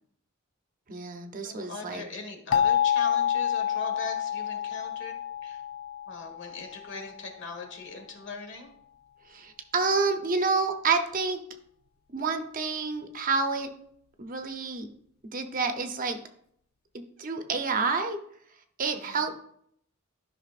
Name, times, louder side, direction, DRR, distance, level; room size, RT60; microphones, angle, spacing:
voice 1, 0.9-2.0 9.3-11.4 12.1-13.7 14.2-14.9 15.3-16.2 16.9-18.2 18.8-19.3, right 4 dB, 40° right, 5 dB, 0.8 m, -28 dB
voice 2, 1.4-5.1 5.4-5.6 6.1-8.7 18.9-19.3, left 3 dB, 60° left, 3 dB, 1.6 m, -40 dB
sound 1, 2.5-7.2, left 9 dB, 80° left, 0.4 m, -28 dB
12.5 x 5.7 x 2.5 m, 0.68 s
head